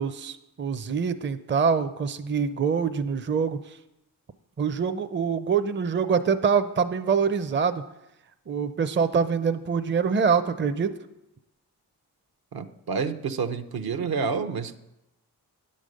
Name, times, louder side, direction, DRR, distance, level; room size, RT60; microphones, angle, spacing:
voice 1, 0.0-3.8 4.6-7.8 8.5-10.9, right 6 dB, 30° right, 10 dB, 0.5 m, -25 dB
voice 2, 12.5-14.8, right 5 dB, 65° right, 7 dB, 0.7 m, -29 dB
9.6 x 5.4 x 6.4 m, 0.90 s
cardioid pair, 50°, 39 cm